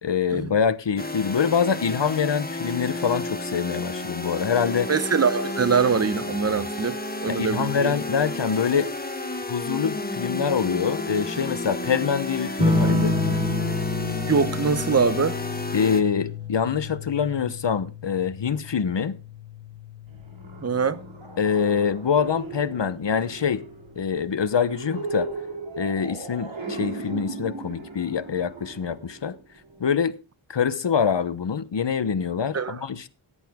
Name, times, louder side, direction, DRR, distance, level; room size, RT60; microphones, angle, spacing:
voice 1, 0.0-4.9 7.3-8.9 9.5-13.4 15.7-19.2 21.4-23.6 24.0-25.3 25.8-29.4 29.8-30.1 30.5-33.1, left 6 dB, 65° left, 1.0 m, -25 dB
sound 1, 1.0-16.0, left 2 dB, 20° left, 1.6 m, -32 dB
voice 2, 4.9-7.9 14.3-15.4 20.6-21.0 32.5-32.8, right 5 dB, 35° right, 0.9 m, -23 dB
sound 2, 12.6-21.7 23.1-23.7, left 2 dB, 15° right, 4.3 m, -29 dB
sound 3, 20.1-29.8, right 3 dB, 80° right, 2.7 m, -37 dB
14.0 x 10.0 x 3.6 m
wide cardioid pair, 45°, 46 cm